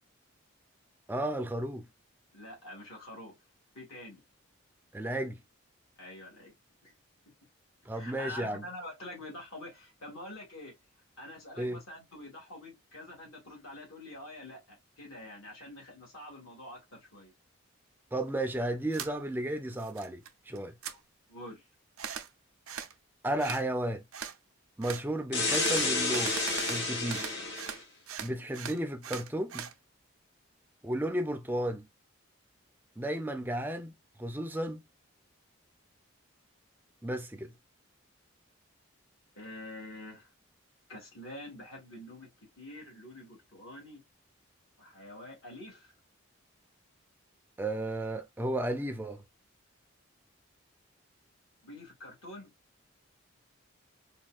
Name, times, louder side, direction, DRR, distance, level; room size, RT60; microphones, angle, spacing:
voice 1, 1.1-1.9 4.9-5.4 7.9-8.6 11.6-11.8 18.1-20.8 23.2-24.0 24.8-26.4 26.7-27.3 28.2-29.7 30.8-31.8 33.0-33.9 34.2-34.8 37.0-37.5 47.6-49.2, right 1 dB, 10° right, 0.4 m, -33 dB
voice 2, 2.3-3.4 3.7-4.2 6.0-6.5 6.8-6.9 7.9-10.7 11.2-17.3 20.9-21.0 21.3-21.6 39.4-40.3 40.9-44.0 44.8-45.9 51.6-52.5, left 1 dB, 75° left, 2.0 m, -46 dB
sound 1, 18.9-19.1 19.5-20.3 20.6-21.0 22.0-22.3 22.7-22.9 23.4-23.6 24.1-24.4 24.8-25.0 25.5-27.8 28.1-29.7, right 8 dB, 90° right, 0.5 m, -39 dB
sound 2, 25.3-27.8, left 3 dB, 55° left, 1.2 m, -30 dB
4.3 x 2.3 x 2.3 m
head